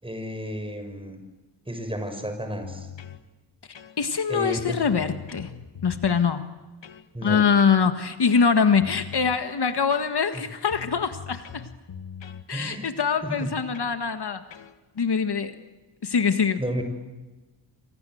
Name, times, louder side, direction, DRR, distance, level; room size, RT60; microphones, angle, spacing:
voice 1, 0.0-1.2 1.7-2.9 4.3-4.8 7.1-7.5 10.3-10.4 12.5-12.9 13.2-13.5 16.6-16.8, equal, 10° right, 6 dB, 6.4 m, -32 dB
sound 1, 2.6-3.2 3.7-4.2 4.5-6.3 6.8-7.1 7.6-7.9 8.3-9.4 9.9-10.4 10.7-12.5 13.0-13.2 13.7-14.0 14.5-14.7, left 8 dB, 75° left, 1.7 m, -42 dB
voice 2, 4.0-5.5 5.8-6.5 7.2-11.7 12.5-14.4 15.0-15.5 16.0-16.6, left 6 dB, 60° left, 8 dB, 1.7 m, -23 dB
28.5 x 26.0 x 7.9 m, 1.2 s
wide cardioid pair, 115°, 45 cm